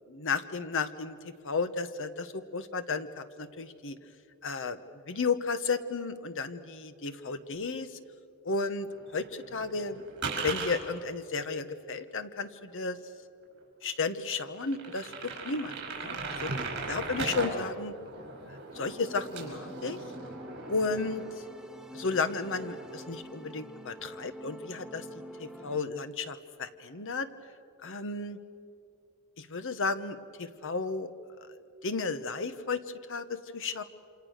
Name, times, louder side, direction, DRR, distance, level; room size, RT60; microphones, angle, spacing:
voice 1, 0.1-1.2 1.4-4.0 4.4-8.0 8.4-10.0 10.4-13.0 13.8-16.5 16.9-17.9 18.5-20.0 20.7-21.4 21.9-27.3 27.8-28.4 29.4-31.1 31.8-32.8 33.1-33.8, left 4 dB, 65° left, 11 dB, 1.2 m, -33 dB
sound 1, 8.8-10.8 12.4-12.5 13.0-13.1 13.6-13.7 14.0-14.1 14.5-17.5 17.8-21.6 21.9-23.0, right 4 dB, 55° right, 5.3 m, -39 dB
sound 2, 18.7-25.8, equal, 5° right, 0.9 m, -46 dB
28.0 x 26.5 x 6.6 m, 2.5 s
head